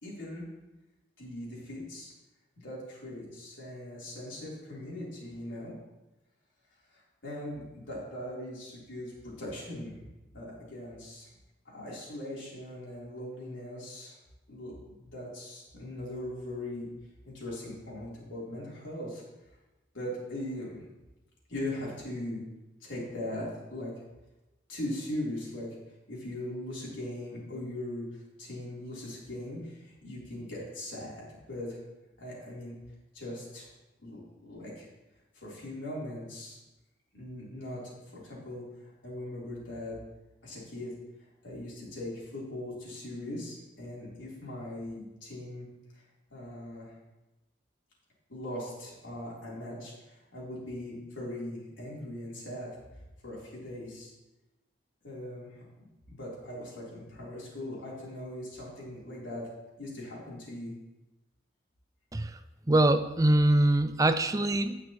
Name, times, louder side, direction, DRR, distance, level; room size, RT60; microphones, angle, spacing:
voice 1, 0.0-0.5 1.2-2.1 2.6-5.7 6.9-9.9 10.3-11.3 11.6-14.1 14.5-16.9 17.2-19.2 19.9-20.9 21.5-22.4 22.8-23.9 24.7-25.7 26.1-31.8 32.2-32.7 33.1-33.7 34.0-34.9 35.3-36.6 37.1-40.0 40.4-40.9 41.4-45.7 46.3-46.9 48.3-52.7 53.2-54.1 55.0-59.5 59.8-60.7, left 1 dB, 80° left, -6 dB, 4.0 m, -40 dB
voice 2, 62.7-64.8, right 1 dB, 20° right, 10 dB, 0.4 m, -23 dB
17.5 x 6.1 x 3.2 m, 1.0 s
head